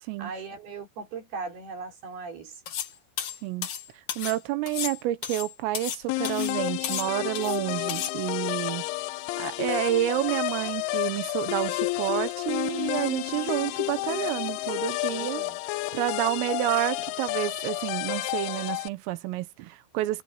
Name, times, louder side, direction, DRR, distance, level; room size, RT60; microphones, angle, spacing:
voice 1, 0.2-2.5 15.1-15.6, right 4 dB, 50° right, 6.1 m, -38 dB
sound 1, 2.7-2.9 3.2-4.4 4.7-6.0 6.2-6.6 6.8-7.6 7.9-8.1, left 9 dB, 65° left, 1.8 m, -33 dB
voice 2, 4.2-8.8 9.4-15.4 15.7-20.2, right 15 dB, 85° right, 3.7 m, -29 dB
sound 2, 6.1-18.9, left 19 dB, 85° left, 2.9 m, -31 dB
omnidirectional pair, 5.9 m